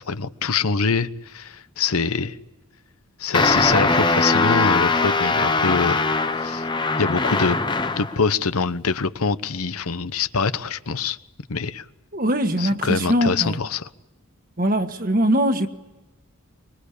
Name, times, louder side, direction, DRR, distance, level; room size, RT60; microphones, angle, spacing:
voice 1, 0.0-2.4 3.2-6.0 6.4-6.7 7.0-7.6 8.0-11.2 11.5-11.8 12.6-13.9, left 5 dB, 90° left, 1.0 m, -24 dB
sound 1, 3.3-8.2, left 3 dB, 20° left, 0.8 m, -21 dB
voice 2, 12.1-13.6 14.6-15.7, equal, 40° right, 1.6 m, -21 dB
25.0 x 22.5 x 8.6 m
head